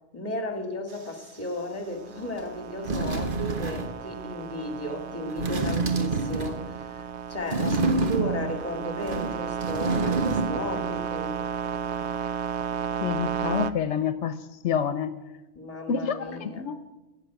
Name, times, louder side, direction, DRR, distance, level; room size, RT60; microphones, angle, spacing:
voice 1, 0.1-11.4 15.5-16.7, left 1 dB, 35° left, 2.2 m, -35 dB
sound 1, 0.9-13.7, right 7 dB, 75° right, 1.0 m, -34 dB
sound 2, 2.4-2.5 2.8-4.0 5.3-6.7 7.5-8.6 9.0-10.7 10.9-11.0, right 3 dB, 50° right, 1.4 m, -27 dB
voice 2, 13.0-14.3 14.6-15.1 15.9-17.0, left 7 dB, 85° left, 1.1 m, -28 dB
14.0 x 8.4 x 10.0 m
omnidirectional pair, 1.2 m